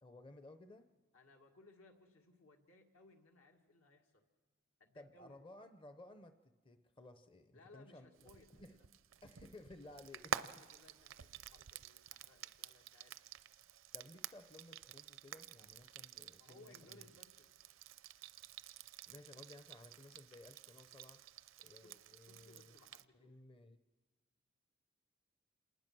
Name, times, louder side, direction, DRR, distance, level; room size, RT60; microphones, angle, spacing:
voice 1, 0.0-0.9 4.9-8.8 9.2-10.5 13.9-17.0 19.1-21.2 21.6-22.7 23.1-23.8, left 2 dB, 25° left, 9 dB, 0.6 m, -57 dB
voice 2, 1.1-4.2 4.8-5.4 7.5-8.9 10.3-13.2 16.4-17.5 21.8-22.0 22.2-23.3, left 2 dB, 80° left, 2 dB, 2.3 m, -64 dB
Frying (food), 8.2-23.0, right 8 dB, 70° right, 0.5 m, -50 dB
27.0 x 19.5 x 6.1 m, 1.5 s
head